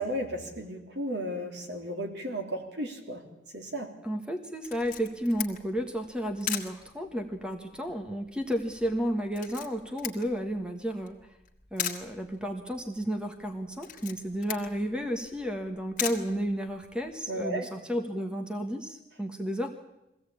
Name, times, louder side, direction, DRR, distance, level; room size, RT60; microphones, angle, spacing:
voice 1, 0.0-3.2 3.5-3.9 17.3-17.7, right 1 dB, 75° right, 3 dB, 3.2 m, -34 dB
voice 2, 4.0-11.3 11.7-19.7, equal, 5° right, 4 dB, 1.3 m, -32 dB
Camera, 4.6-17.1, left 10 dB, 45° left, 1.9 m, -41 dB
22.5 x 16.0 x 8.6 m, 0.93 s
head